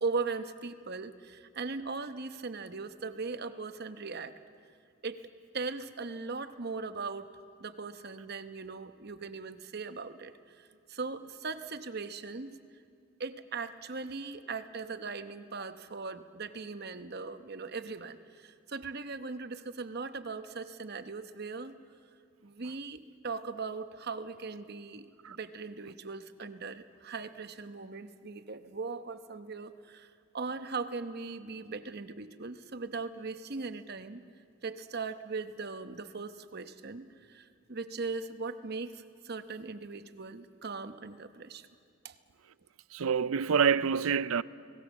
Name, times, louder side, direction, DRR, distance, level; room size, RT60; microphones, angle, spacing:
voice 1, 0.0-4.4 5.0-5.3 5.5-7.3 7.6-12.6 13.2-21.8 22.4-34.2 34.6-41.7 42.0-42.1, right 4 dB, 50° right, 0.9 m, -39 dB
voice 2, 42.9-44.4, right 6 dB, 85° right, 0.5 m, -27 dB
30.0 x 19.0 x 7.2 m
head